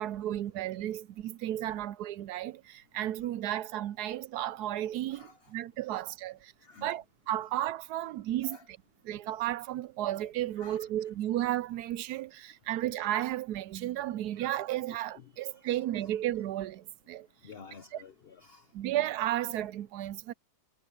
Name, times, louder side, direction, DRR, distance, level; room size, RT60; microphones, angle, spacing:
voice 1, 0.0-6.5 6.8-8.8 9.1-17.3 17.9-18.0 18.7-20.3, right 13 dB, 75° right, 1.0 m, -33 dB
voice 2, 5.1-5.5 6.6-7.0 8.4-8.6 10.6-10.9 14.3-14.4 15.1-16.1 17.4-18.7, left 5 dB, 45° left, 0.9 m, -52 dB
omnidirectional pair, 1.8 m